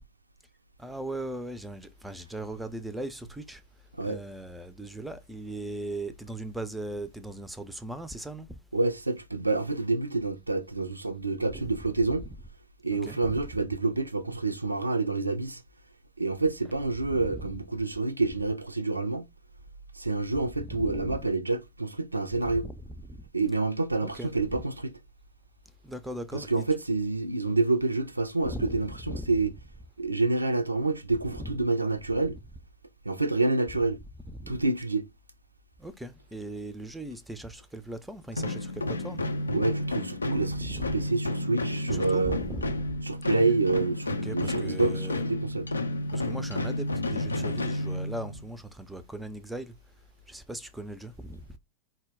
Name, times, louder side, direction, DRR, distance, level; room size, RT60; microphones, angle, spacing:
voice 1, 0.8-3.6 4.0-8.6 11.5-12.4 12.9-13.5 17.0-17.5 20.6-21.3 22.4-23.2 24.0-24.6 25.8-26.7 28.5-29.5 31.3-31.5 34.3-34.6 35.8-39.2 40.5-41.0 41.9-43.0 43.3-43.6 44.1-45.2 46.1-49.7 50.3-51.6, right 1 dB, 5° right, 0.5 m, -39 dB
voice 2, 8.7-12.3 12.8-15.6 16.2-19.3 19.9-22.7 23.3-24.9 26.3-29.5 30.0-32.4 33.0-34.0 34.5-35.1 39.5-42.4 43.0-45.7, right 3 dB, 85° right, 0.4 m, -28 dB
sound 1, 38.3-48.5, left 1 dB, 80° left, 0.4 m, -31 dB
4.3 x 2.1 x 3.5 m
figure-of-eight pair, 90°, 0 cm